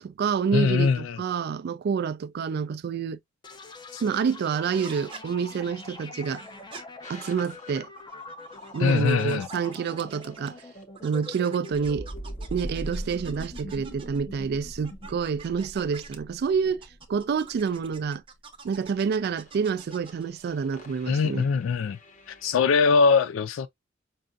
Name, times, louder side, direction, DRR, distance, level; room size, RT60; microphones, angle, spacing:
voice 1, 0.0-3.2 4.0-6.4 7.1-7.9 8.7-10.6 11.0-12.1 12.5-18.2 18.6-21.4, right 6 dB, 55° right, 0.3 m, -28 dB
voice 2, 0.5-1.2 3.9-4.0 8.8-9.5 21.1-22.0 22.3-23.7, left 5 dB, 75° left, 0.3 m, -22 dB
sound 1, 3.4-17.0, left 3 dB, 20° left, 0.6 m, -45 dB
sound 2, 4.7-5.2 6.2-6.8 7.8-10.6 10.9-14.2 14.8-16.2 16.8-20.3, right 5 dB, 25° right, 0.6 m, -47 dB
sound 3, 7.0-7.8 8.5-10.8 11.7-22.7, right 1 dB, 40° left, 1.1 m, -43 dB
5.3 x 2.5 x 2.3 m
head